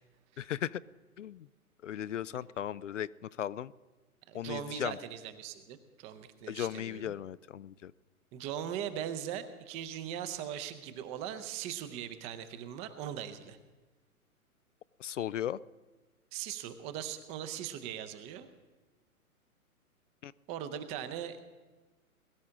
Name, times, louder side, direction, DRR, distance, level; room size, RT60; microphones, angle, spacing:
voice 1, 0.4-0.8 1.2-1.5 1.8-3.1 3.4-3.7 4.3-5.0 6.5-7.9 15.0-15.6 20.2-20.3, left 11 dB, 55° left, 19 dB, 0.5 m, -36 dB
voice 2, 4.3-7.1 8.3-13.6 16.3-18.5 20.5-21.4, right 9 dB, 15° right, 11 dB, 0.6 m, -40 dB
21.5 x 12.5 x 3.7 m, 1.2 s
figure-of-eight pair, 120°, 44 cm